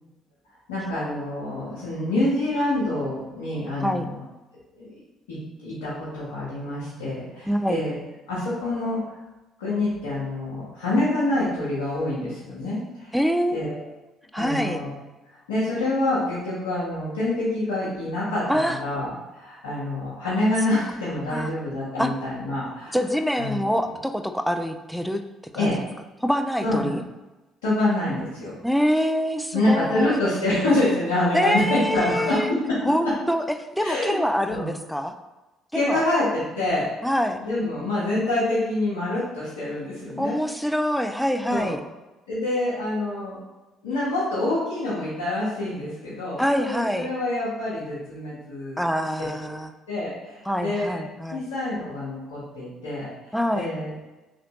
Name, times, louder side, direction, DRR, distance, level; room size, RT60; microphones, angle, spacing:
voice 1, 0.7-4.1 4.7-5.0 5.3-7.9 8.3-9.2 9.6-13.1 13.5-13.8 14.4-14.9 15.5-23.0 23.4-23.6 25.5-25.8 26.6-27.0 27.6-28.5 29.5-32.8 33.8-34.2 34.5-34.7 35.7-36.9 37.4-40.4 41.5-41.7 42.3-43.4 43.8-48.8 49.2-49.5 49.9-51.0 51.3-54.1, left 1 dB, 90° left, -10 dB, 0.8 m, -26 dB
voice 2, 7.5-7.8 13.1-13.8 14.3-14.8 18.5-18.8 21.3-21.5 22.0-22.1 22.9-25.2 25.5-25.7 26.2-27.0 28.6-30.2 31.3-32.5 32.8-35.2 35.7-36.0 37.0-37.4 40.2-41.8 46.4-47.1 48.8-49.7 50.5-51.5 53.3-53.7, equal, ahead, 7 dB, 0.3 m, -25 dB
3.1 x 2.5 x 2.8 m, 1.1 s
hypercardioid pair, 55°, 0 cm